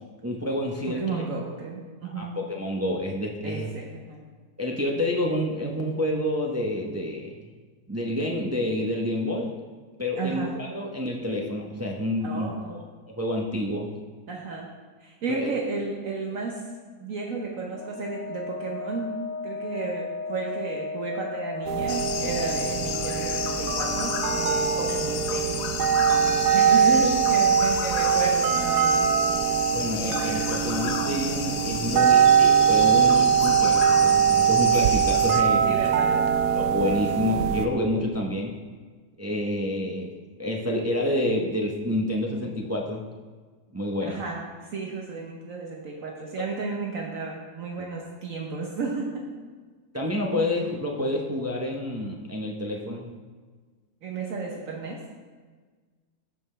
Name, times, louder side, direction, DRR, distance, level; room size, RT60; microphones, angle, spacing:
voice 1, 0.2-1.0 2.0-3.7 4.6-7.3 7.9-9.5 10.0-12.8 13.2-13.9 15.3-15.5 29.7-35.6 36.5-38.5 39.2-40.1 40.4-43.1 43.7-44.2 49.9-53.1, left 1 dB, 25° right, 0 dB, 0.3 m, -28 dB
voice 2, 0.9-2.3 3.4-4.2 10.2-10.5 12.2-12.8 14.3-14.7 15.0-16.6 17.0-19.1 19.4-25.7 26.5-29.1 31.8-32.1 35.6-36.3 44.0-49.2 54.0-55.0, right 4 dB, 60° right, -1 dB, 1.3 m, -33 dB
Wind instrument woodwind instrument, 17.7-25.5, left 3 dB, 65° left, 0.9 m, -35 dB
sound 1, 21.7-37.7, right 8 dB, 85° right, 1.2 m, -22 dB
sound 2, 21.9-35.4, left 8 dB, 85° left, 1.2 m, -32 dB
14.5 x 5.5 x 3.3 m, 1.4 s
omnidirectional pair, 1.7 m